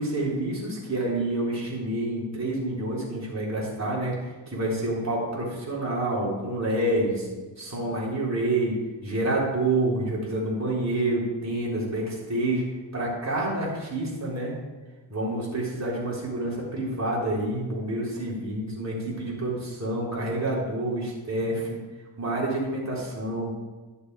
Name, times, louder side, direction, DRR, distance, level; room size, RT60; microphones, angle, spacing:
voice 1, 0.0-7.3 7.6-8.8 9.0-12.7 12.9-14.5 15.1-21.8 22.2-23.5, right 1 dB, 35° right, -5 dB, 3.9 m, -28 dB
11.5 x 6.7 x 4.8 m, 1.2 s
wide cardioid pair, 95°, 47 cm